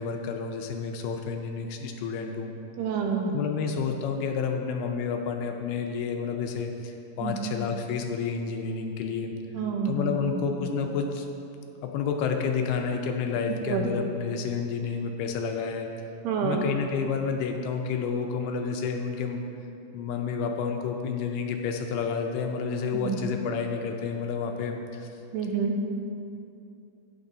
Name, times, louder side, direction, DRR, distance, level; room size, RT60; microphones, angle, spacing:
voice 1, 0.0-2.5 3.3-9.3 9.9-11.3 11.8-15.9 16.4-19.4 19.9-25.1, left 6 dB, 80° left, 3 dB, 2.5 m, -30 dB
voice 2, 2.8-3.3 7.2-7.6 9.5-10.5 13.7-13.9 16.2-16.6 22.9-23.2 25.3-25.7, right 5 dB, 80° right, 1 dB, 2.9 m, -28 dB
13.0 x 9.5 x 2.7 m, 2.7 s
omnidirectional pair, 4.7 m